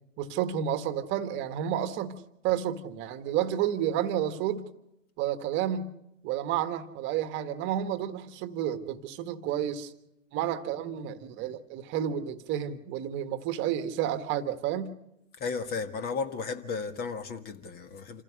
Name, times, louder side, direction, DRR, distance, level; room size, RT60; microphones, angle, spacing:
voice 1, 0.2-2.2 2.4-4.7 5.2-5.9 6.2-9.9 10.3-14.9, right 10 dB, 30° right, 1.5 m, -30 dB
voice 2, 15.4-18.2, left 5 dB, 25° left, 1.6 m, -34 dB
28.0 x 15.5 x 6.4 m
figure-of-eight pair, 110°, 40 cm